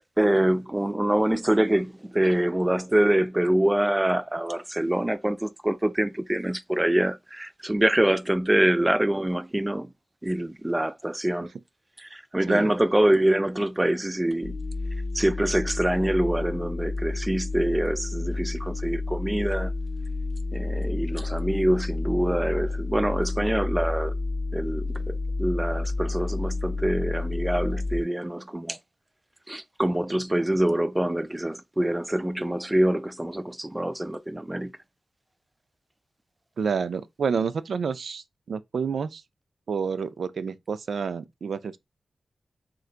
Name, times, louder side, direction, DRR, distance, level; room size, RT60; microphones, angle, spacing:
voice 1, 0.2-9.9 10.2-11.5 12.0-14.6 15.1-19.7 20.5-24.1 24.5-28.8 29.5-34.7, right 1 dB, 10° right, 0.3 m, -25 dB
sound 1, 14.4-28.0, left 3 dB, 70° left, 0.4 m, -30 dB
voice 2, 36.6-39.2 39.7-41.8, right 6 dB, 90° right, 0.3 m, -29 dB
3.8 x 2.5 x 4.4 m
wide cardioid pair, 155°, 0 cm